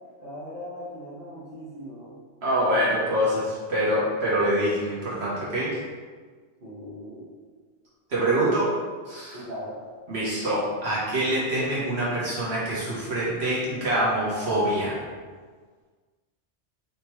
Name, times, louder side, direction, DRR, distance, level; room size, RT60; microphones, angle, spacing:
voice 1, 0.2-2.1 2.6-2.9 6.6-7.2 9.3-9.8, left 1 dB, 40° right, -11 dB, 1.8 m, -38 dB
voice 2, 2.4-5.7 8.1-8.7 9.1-9.4 10.1-15.0, right 1 dB, 65° right, -7 dB, 1.3 m, -25 dB
5.1 x 3.0 x 3.1 m, 1.5 s
omnidirectional pair, 1.2 m